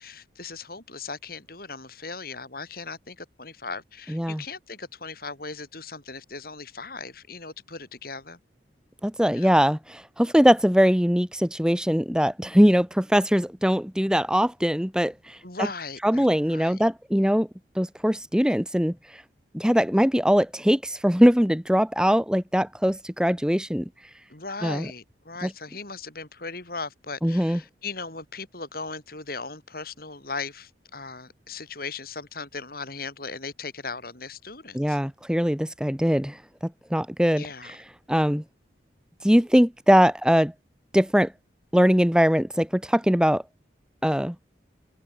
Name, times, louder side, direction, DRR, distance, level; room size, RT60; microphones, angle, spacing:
voice 1, 0.0-8.4 9.3-9.7 15.4-16.8 24.3-35.0 37.4-37.8 39.3-39.5, left 4 dB, 50° left, 6.0 m, -38 dB
voice 2, 4.1-4.4 9.0-15.4 16.0-17.5 17.8-19.2 19.5-23.9 24.6-24.8 25.4-25.5 27.2-27.6 34.7-36.4 36.9-37.7 38.1-38.4 39.2-40.5 40.9-41.3 41.7-43.4 44.0-44.3, equal, 5° right, 1.5 m, -21 dB
head